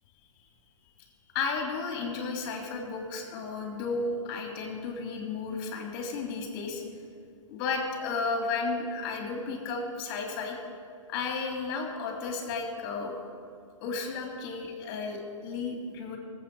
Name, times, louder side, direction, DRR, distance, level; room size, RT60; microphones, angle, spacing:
voice 1, 1.3-6.8 7.5-10.6 11.1-13.1 13.8-16.2, left 4 dB, 40° left, 1 dB, 3.2 m, -33 dB
20.5 x 8.3 x 5.0 m, 2.4 s
hypercardioid pair, 130°, 17 cm